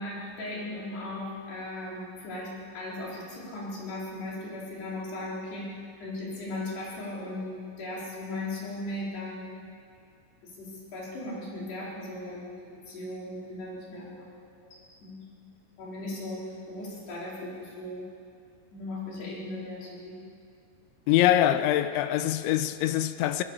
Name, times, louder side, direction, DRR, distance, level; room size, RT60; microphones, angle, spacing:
voice 1, 0.0-9.5 10.4-14.7 15.0-15.5 15.8-18.1 18.7-20.2, left 1 dB, 55° left, 6.4 m, -37 dB
voice 2, 21.1-23.4, left 12 dB, 80° left, 2.8 m, -24 dB
22.5 x 20.0 x 7.3 m
omnidirectional pair, 5.8 m